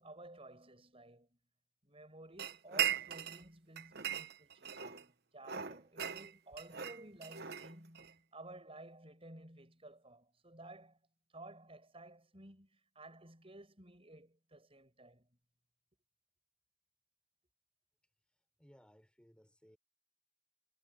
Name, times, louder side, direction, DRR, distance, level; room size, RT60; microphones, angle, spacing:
voice 1, 0.0-1.4 1.8-11.0 11.3-15.4, right 1 dB, 25° right, 7.4 m, -54 dB
sound 1, 2.4-3.4 3.8-5.0 5.4-8.1, right 9 dB, 50° right, 1.1 m, -39 dB
voice 2, 18.6-19.8, equal, 5° left, 4.7 m, -63 dB
head